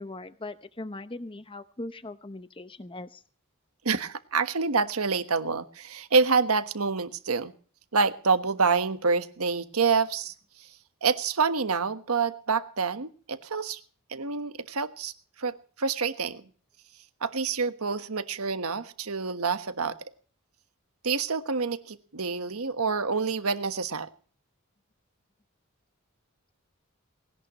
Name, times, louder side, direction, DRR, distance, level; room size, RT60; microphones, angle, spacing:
voice 1, 0.0-3.2, left 2 dB, 25° left, 11 dB, 0.8 m, -40 dB
voice 2, 3.8-7.5 7.9-10.7 11.0-13.8 14.1-15.1 15.4-16.4 17.2-20.0 21.0-24.1, right 4 dB, 85° right, 10 dB, 1.3 m, -27 dB
19.5 x 17.5 x 3.1 m, 0.44 s
head